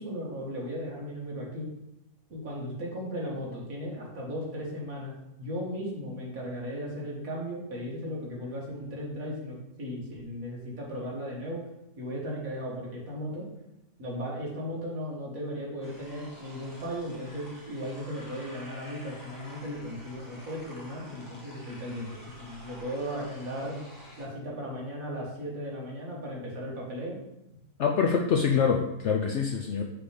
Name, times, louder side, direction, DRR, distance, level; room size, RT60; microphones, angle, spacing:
voice 1, 0.0-1.7 2.3-5.1 5.4-11.6 12.0-13.5 14.0-22.1 22.4-23.8 24.2-27.2, equal, 55° right, -4 dB, 2.1 m, -36 dB
sound 1, 15.8-24.2, equal, 15° left, 0.8 m, -49 dB
voice 2, 27.8-29.8, left 6 dB, 75° left, 2 dB, 0.6 m, -25 dB
6.0 x 3.4 x 5.1 m, 0.88 s
omnidirectional pair, 1.7 m